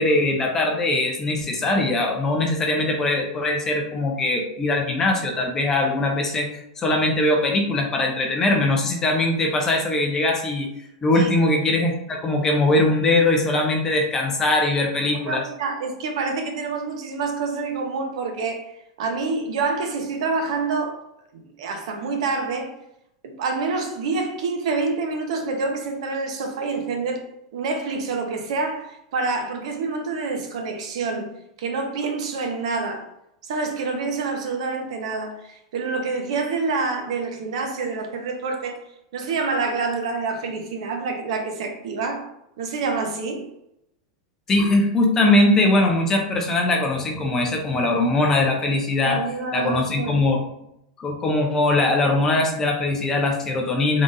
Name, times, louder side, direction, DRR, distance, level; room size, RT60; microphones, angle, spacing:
voice 1, 0.0-10.7 11.0-15.4 44.5-49.2 49.5-50.4 51.0-54.0, left 2 dB, 15° left, 0.4 m, -21 dB
voice 2, 15.1-18.7 19.0-21.0 21.3-22.7 23.2-27.2 27.5-31.3 31.6-33.1 33.4-38.8 39.1-42.3 42.6-43.5 49.0-50.3, right 4 dB, 60° right, 0.7 m, -27 dB
3.7 x 2.4 x 3.9 m
supercardioid pair, 175°, 4 cm